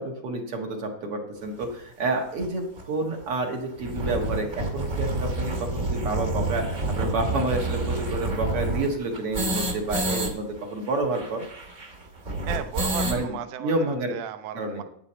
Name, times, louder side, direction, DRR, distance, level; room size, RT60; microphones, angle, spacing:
voice 1, 0.0-11.5 13.1-14.2 14.5-14.8, right 2 dB, 50° right, 2 dB, 2.2 m, -29 dB
sound 1, 1.6-1.7 2.4-2.5 2.8-2.9 3.1-3.2 3.6-10.3 10.6-10.7 10.9-13.2, right 1 dB, 30° right, 1.8 m, -28 dB
voice 2, 12.4-14.8, right 10 dB, 70° right, 10 dB, 1.6 m, -36 dB
12.0 x 9.3 x 4.3 m, 0.69 s
omnidirectional pair, 3.7 m